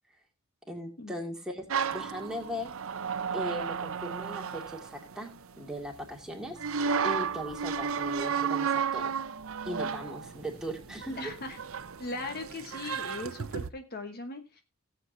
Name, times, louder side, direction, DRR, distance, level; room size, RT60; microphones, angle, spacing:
voice 1, 0.7-2.7 3.3-5.3 5.6-9.1 9.7-11.3, equal, 5° right, 0 dB, 2.2 m, -38 dB
sound 1, 1.7-5.7 6.6-13.7, right 6 dB, 65° right, 0.6 m, -33 dB
sound 2, 4.8-8.7 9.0-12.4, right 1 dB, 20° left, 2.4 m, -60 dB
voice 2, 11.2-11.6 12.0-14.6, left 2 dB, 45° left, 7 dB, 1.1 m, -39 dB
18.5 x 7.8 x 2.6 m, 0.25 s
head